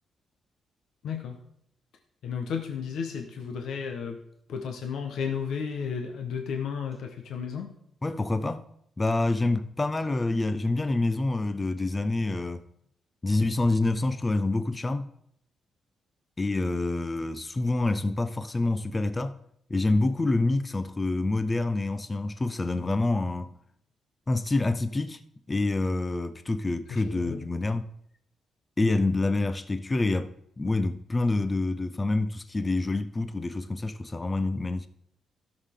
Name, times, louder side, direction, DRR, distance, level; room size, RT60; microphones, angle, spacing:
voice 1, 1.0-1.4 2.2-4.2 4.5-7.7 26.9-27.4 28.8-28.9, left 6 dB, 70° left, 1.2 m, -33 dB
voice 2, 8.0-8.6 9.0-12.6 13.2-15.1 16.4-19.4 19.7-23.5 24.3-25.2 25.5-27.9 28.8-30.3 30.6-34.9, left 2 dB, 15° left, 0.5 m, -27 dB
16.5 x 6.6 x 3.7 m
wide cardioid pair, 170°, 0 cm